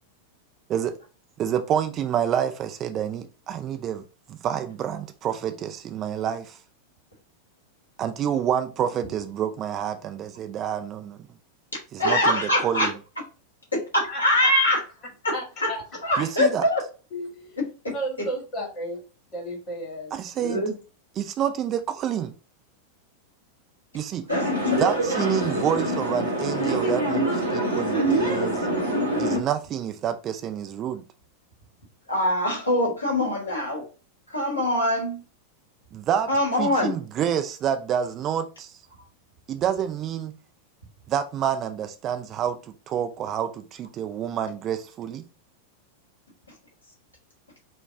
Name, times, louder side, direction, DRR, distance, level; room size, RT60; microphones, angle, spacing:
voice 1, 1.4-4.0 4.3-6.6 8.0-11.2 11.9-12.9 16.2-16.6 20.1-20.6 21.2-22.3 23.9-24.3 24.8-28.7 29.2-31.0 35.9-36.3 36.6-38.7 39.5-40.3 41.1-42.6 42.9-45.2, right 9 dB, 30° right, 0.4 m, -28 dB
voice 2, 12.0-12.9 13.7-14.8 15.2-15.3 15.6-15.7 16.0-16.8 18.2-18.3 20.4-20.7 24.3-24.8 32.1-33.9 34.3-35.2 36.3-36.9, left 1 dB, 75° left, 1.5 m, -23 dB
voice 3, 14.1-14.5 15.3-15.8 17.1-17.5 17.9-19.0 19.3-20.1, right 1 dB, 35° left, 1.8 m, -33 dB
sound 1, 24.3-29.4, right 1 dB, 85° right, 1.5 m, -25 dB
4.4 x 2.3 x 3.4 m
figure-of-eight pair, 90°, 0 cm